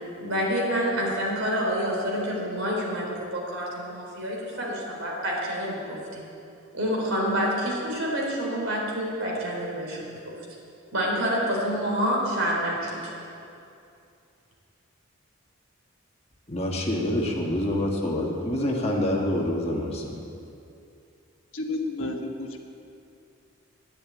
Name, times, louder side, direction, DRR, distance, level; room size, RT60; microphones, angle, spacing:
voice 1, 0.2-6.2 6.7-10.2 10.9-13.1, equal, 80° right, -3 dB, 3.9 m, -28 dB
voice 2, 16.5-20.2, left 1 dB, 30° left, -1 dB, 1.7 m, -26 dB
voice 3, 21.5-22.6, left 2 dB, 70° left, 3 dB, 1.4 m, -31 dB
11.5 x 10.5 x 8.5 m, 2.6 s
head